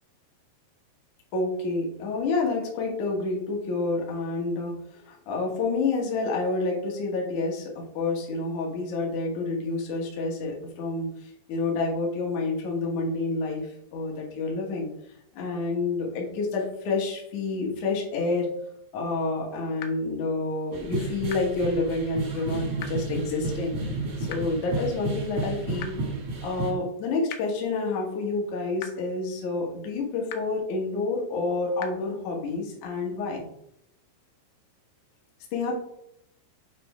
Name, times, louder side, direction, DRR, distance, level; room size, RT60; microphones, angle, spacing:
voice 1, 1.3-14.9 15.3-18.5 18.9-25.9 26.4-33.5 35.5-35.7, left 3 dB, 60° left, -1 dB, 2.1 m, -29 dB
sound 1, 19.8-19.9 21.3-21.4 22.8-22.9 24.3-24.4 25.8-25.9 27.3-27.4 28.8-28.9 30.3-30.4 31.8-31.9, left 9 dB, 80° left, 2.6 m, -36 dB
sound 2, 20.7-26.7, right 2 dB, 55° right, 1.4 m, -32 dB
7.7 x 4.4 x 3.4 m, 0.75 s
omnidirectional pair, 5.4 m